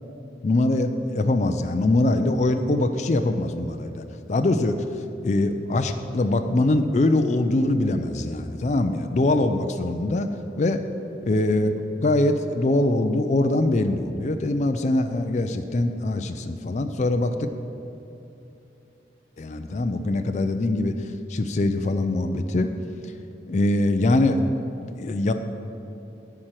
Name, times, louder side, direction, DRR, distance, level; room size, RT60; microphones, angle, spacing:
voice 1, 0.4-4.0 4.3-4.8 5.2-10.3 10.6-10.8 11.3-17.5 19.4-20.9 21.3-22.7 23.5-24.4 24.8-25.3, left 2 dB, 40° left, 7 dB, 0.4 m, -23 dB
11.0 x 4.4 x 7.5 m, 2.9 s
head